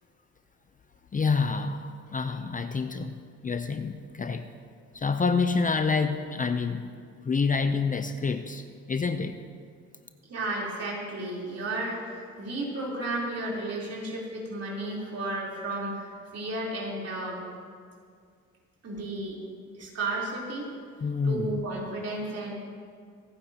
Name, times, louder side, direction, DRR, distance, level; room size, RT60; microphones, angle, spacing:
voice 1, 1.1-3.1 3.4-4.5 4.9-6.9 7.2-9.4 21.0-21.6, left 4 dB, 25° left, 8 dB, 0.6 m, -27 dB
voice 2, 10.2-17.4 18.8-19.4 19.7-20.7 21.2-22.5, right 2 dB, 55° right, -4 dB, 3.8 m, -33 dB
26.0 x 9.3 x 2.9 m, 2.1 s
cardioid pair, 90°, 30 cm